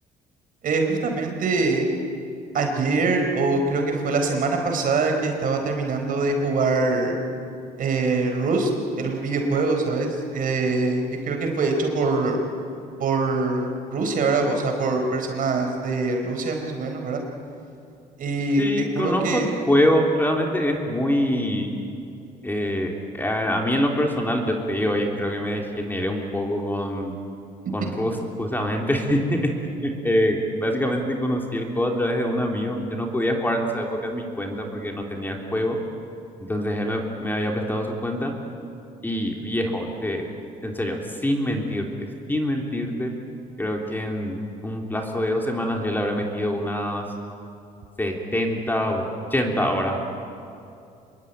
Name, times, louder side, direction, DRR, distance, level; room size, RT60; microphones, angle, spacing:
voice 1, 0.6-1.9 2.5-7.2 7.8-8.7 9.0-12.4 13.0-17.2 18.2-19.5 27.8-27.9, right 3 dB, 55° right, 4 dB, 4.6 m, -23 dB
voice 2, 18.6-21.7 22.4-27.1 27.7-29.5 29.8-35.8 36.5-38.3 39.0-40.3 40.6-41.9 42.3-43.1 43.6-47.0 48.0-49.0 49.3-50.0, equal, 10° left, 1 dB, 3.3 m, -25 dB
26.0 x 22.0 x 9.4 m, 2.5 s
cardioid pair, 110°, 17 cm